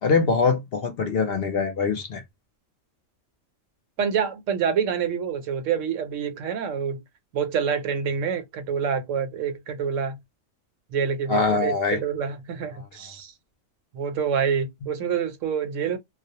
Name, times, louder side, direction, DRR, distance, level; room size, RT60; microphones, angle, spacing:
voice 1, 0.0-2.2 11.3-12.0, left 4 dB, 60° left, 0.7 m, -23 dB
voice 2, 4.0-7.0 7.3-10.2 10.9-13.3 13.9-16.0, right 7 dB, 85° right, 1.0 m, -27 dB
2.3 x 2.0 x 2.7 m
omnidirectional pair, 1.3 m